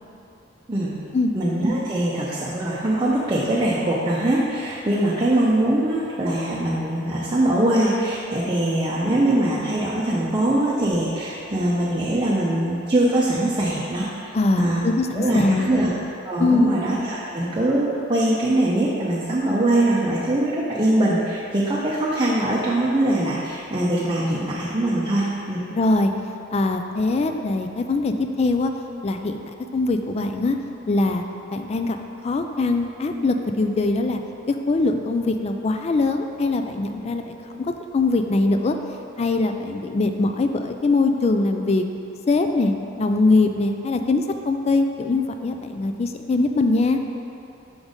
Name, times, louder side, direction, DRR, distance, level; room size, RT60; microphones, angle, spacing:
voice 1, 1.3-14.8 15.1-15.9 16.2-25.6, right 1 dB, 25° right, -6 dB, 0.6 m, -22 dB
voice 2, 14.3-15.8 16.4-16.7 25.7-26.1 26.5-28.7 29.0-29.4 29.7-30.6 30.9-31.2 31.5-32.0 32.2-34.2 34.5-38.8 39.2-41.9 42.3-47.0, left 3 dB, 35° left, 6 dB, 0.3 m, -22 dB
6.1 x 3.9 x 5.1 m, 2.8 s
head